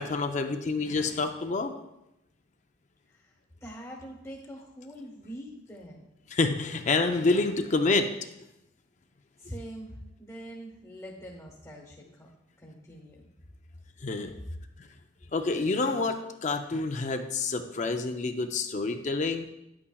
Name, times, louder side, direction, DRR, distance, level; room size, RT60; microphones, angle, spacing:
voice 1, 0.0-1.7 6.3-8.1 14.0-14.3 15.3-19.5, left 3 dB, 40° left, 7 dB, 0.5 m, -28 dB
voice 2, 3.1-6.0 9.4-12.3 12.6-13.2, equal, 15° left, -2 dB, 1.1 m, -44 dB
9.7 x 8.5 x 2.3 m, 0.87 s
head